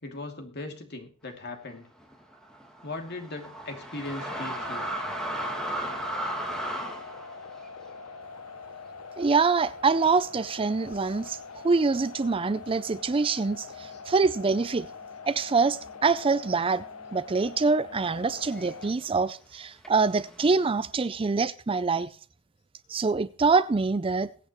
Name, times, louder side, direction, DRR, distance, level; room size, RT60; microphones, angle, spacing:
voice 1, 0.0-1.9 2.8-4.9 13.9-14.0, left 2 dB, 50° left, 2.7 m, -38 dB
sound 1, 2.0-9.6 10.0-10.1 10.9-11.3 12.1-12.2 12.4-14.2 14.5-15.0 15.3-19.1 19.8-20.7, right 1 dB, 5° left, 2.2 m, -37 dB
sound 2, 4.2-18.9, left 5 dB, 90° left, 0.8 m, -44 dB
voice 2, 9.2-14.9 15.3-16.8 17.1-22.1 22.9-24.3, right 4 dB, 25° right, 0.4 m, -25 dB
22.5 x 8.7 x 3.1 m
head